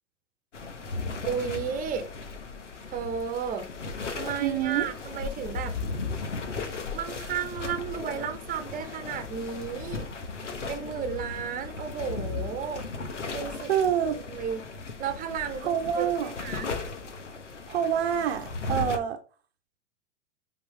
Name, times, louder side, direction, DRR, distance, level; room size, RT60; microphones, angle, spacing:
sound 1, 0.5-19.0, left 4 dB, 75° left, 1.3 m, -36 dB
voice 1, 1.2-2.1 2.9-3.7 4.1-5.7 6.5-10.0 10.7-12.8 13.2-13.7 14.3-14.6 15.0-15.7 15.9-16.7, right 7 dB, 20° right, 1.2 m, -33 dB
voice 2, 4.4-4.9 13.7-14.2 15.6-16.4 17.7-19.2, right 9 dB, 55° right, 1.0 m, -27 dB
9.9 x 4.0 x 3.5 m
figure-of-eight pair, 95°, 37 cm